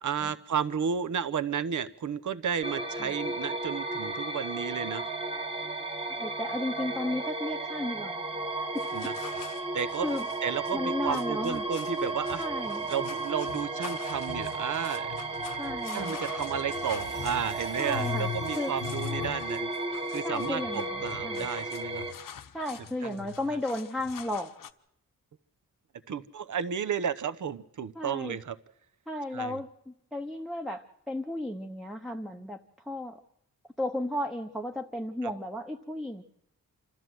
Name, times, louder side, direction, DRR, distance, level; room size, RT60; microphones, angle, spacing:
voice 1, 0.0-5.1 8.9-9.1 9.7-12.5 12.9-15.1 15.9-19.7 20.1-22.1 23.0-23.2 26.1-28.6 29.3-29.6 35.2-35.3, right 7 dB, 65° right, 14 dB, 1.0 m, -33 dB
sound 1, 2.6-22.1, right 2 dB, 15° right, 1.7 m, -34 dB
voice 2, 6.1-8.2 10.0-10.3 10.7-11.6 12.4-12.9 15.6-16.2 17.8-18.3 18.6-18.7 20.2-21.5 22.5-24.6 27.9-28.4 29.1-32.6 32.8-33.2 33.8-36.2, left 1 dB, ahead, 4 dB, 0.8 m, -34 dB
sound 2, 8.8-24.7, left 9 dB, 80° left, 1.0 m, -43 dB
sound 3, 16.7-20.0, right 1 dB, 35° right, 1.9 m, -52 dB
27.0 x 13.5 x 7.7 m, 0.79 s
wide cardioid pair, 150°, 32 cm